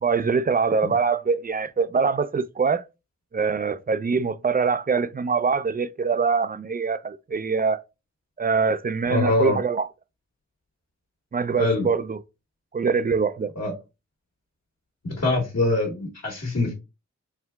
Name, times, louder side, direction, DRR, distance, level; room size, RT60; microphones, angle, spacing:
voice 1, 0.0-2.8 3.3-7.8 8.4-9.9 11.3-12.2 12.7-13.5, right 5 dB, 30° right, 0.4 m, -23 dB
voice 2, 9.1-9.6 11.6-11.9 13.6-13.7 15.0-16.7, left 2 dB, 55° left, 1.5 m, -23 dB
4.5 x 3.5 x 2.3 m
wide cardioid pair, 60°, 29 cm